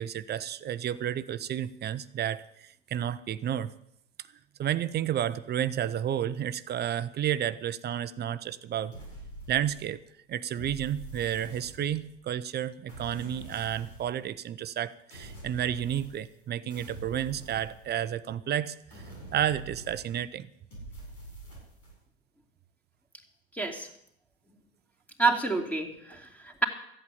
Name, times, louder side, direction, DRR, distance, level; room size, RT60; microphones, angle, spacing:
voice 1, 0.0-3.7 4.6-8.9 9.5-10.0 10.3-19.0 19.3-20.5, right 10 dB, 30° right, 14 dB, 0.7 m, -31 dB
sound 1, 8.9-10.0 10.6-12.2 12.9-14.2 15.1-16.4 16.7-18.3 18.9-20.3 20.7-22.0, right 1 dB, 85° left, 7.8 m, -45 dB
voice 2, 23.5-23.9 25.2-26.6, right 3 dB, 5° left, 2 dB, 2.7 m, -28 dB
14.0 x 8.3 x 8.5 m, 0.73 s
hypercardioid pair, 90°, 32 cm